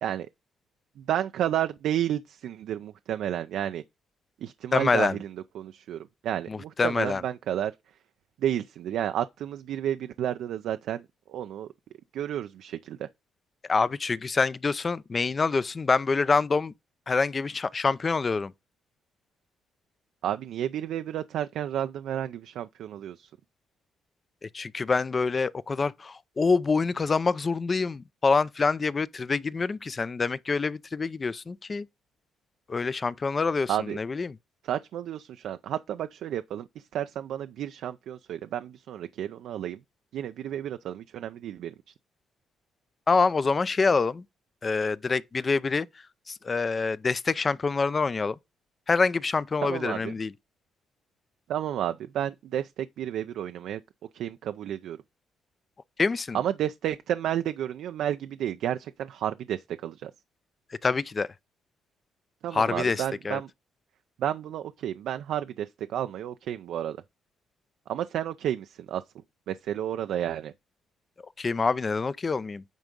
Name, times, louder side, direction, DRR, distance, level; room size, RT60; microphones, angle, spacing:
voice 1, 1.0-3.8 4.4-7.7 8.4-11.7 12.1-13.1 20.2-23.3 33.7-34.0 34.6-39.8 40.1-41.9 49.6-50.1 51.5-53.8 54.1-55.0 56.3-60.1 62.4-63.5 64.2-67.0 67.9-69.0 69.5-70.5, right 11 dB, 75° right, 0.4 m, -31 dB
voice 2, 4.7-5.2 6.5-7.2 13.7-16.7 17.1-18.5 24.4-31.9 32.7-34.3 43.1-44.2 44.6-45.9 46.3-48.4 48.9-50.3 56.0-56.4 60.8-61.3 62.5-63.4 71.4-72.6, left 4 dB, 35° left, 0.5 m, -26 dB
9.1 x 3.6 x 5.2 m
cardioid pair, 90°, 0 cm